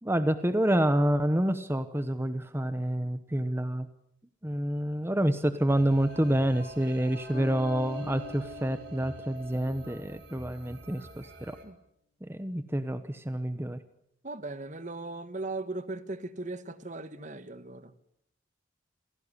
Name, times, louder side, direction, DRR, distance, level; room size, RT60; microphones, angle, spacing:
voice 1, 0.0-3.9 4.4-11.6 12.2-13.8, right 1 dB, 10° right, 11 dB, 1.0 m, -28 dB
sound 1, 5.7-11.6, right 1 dB, 55° right, 4.3 m, -46 dB
sound 2, 7.3-11.3, left 3 dB, 30° left, 3.2 m, -47 dB
voice 2, 14.2-17.9, right 2 dB, 40° right, 13 dB, 1.5 m, -38 dB
28.0 x 17.0 x 9.9 m, 0.78 s
head